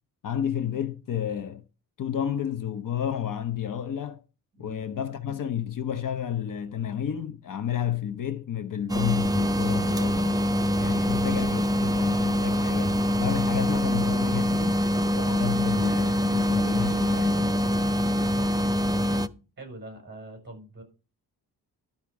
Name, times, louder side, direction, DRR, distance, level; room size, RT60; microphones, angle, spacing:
voice 1, 0.2-1.6 2.0-4.2 4.6-10.4 10.8-14.8 15.1-17.6, left 9 dB, 55° left, 0.9 m, -31 dB
voice 2, 4.5-4.8 11.1-11.3 19.0-20.8, right 1 dB, 25° right, 4.8 m, -44 dB
sound 1, 8.9-19.3, left 1 dB, 10° right, 0.4 m, -24 dB
12.0 x 5.8 x 4.8 m
wide cardioid pair, 140°, 39 cm